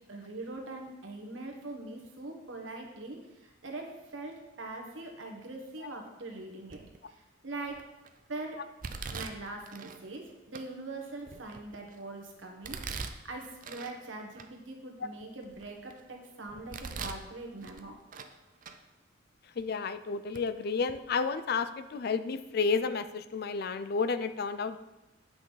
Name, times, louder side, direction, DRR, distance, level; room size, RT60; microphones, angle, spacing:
voice 1, 0.1-6.8 7.1-7.8 8.3-8.6 9.1-17.9, right 2 dB, 90° right, 2 dB, 1.4 m, -42 dB
Domestic sounds home sounds, 6.7-7.1 7.6-8.1 8.8-10.0 10.5-10.6 11.2-12.0 12.6-14.0 14.4-14.5 15.0-16.0 16.5-17.3 17.6-18.3 18.6-18.8 19.6-19.7 20.3-20.4 20.8-21.0, right 5 dB, 45° right, 0.5 m, -42 dB
voice 2, 19.6-24.8, left 5 dB, 55° left, 12 dB, 0.4 m, -31 dB
8.8 x 5.7 x 4.0 m, 1.0 s
head